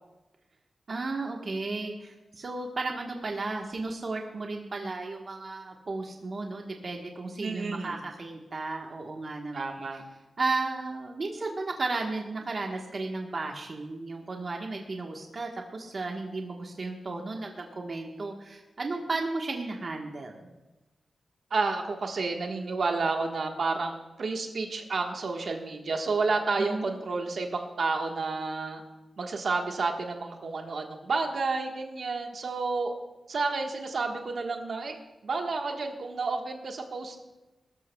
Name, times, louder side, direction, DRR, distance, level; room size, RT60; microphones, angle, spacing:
voice 1, 0.9-9.8 10.4-20.5 26.6-26.9, right 3 dB, 45° right, 1 dB, 1.3 m, -34 dB
voice 2, 7.4-8.0 9.5-10.0 21.5-28.8 29.2-32.9 33.3-35.0 35.2-37.3, right 3 dB, 60° right, 2 dB, 1.4 m, -30 dB
20.5 x 13.0 x 2.3 m, 1.1 s
wide cardioid pair, 150°, 0 cm